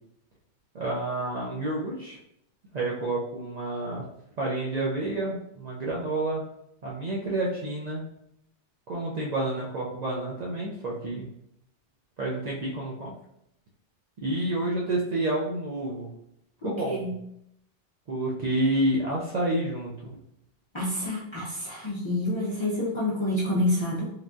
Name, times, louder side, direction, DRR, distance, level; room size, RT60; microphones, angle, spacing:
voice 1, 0.7-2.2 2.7-4.1 4.4-6.4 6.8-8.0 8.9-11.3 12.2-13.1 14.2-16.1 16.6-17.1 18.1-20.1, right 1 dB, 65° right, -4 dB, 0.4 m, -29 dB
voice 2, 16.6-17.1 20.7-24.0, left 1 dB, 45° left, -6 dB, 0.4 m, -28 dB
3.2 x 2.2 x 2.5 m, 0.77 s
omnidirectional pair, 1.2 m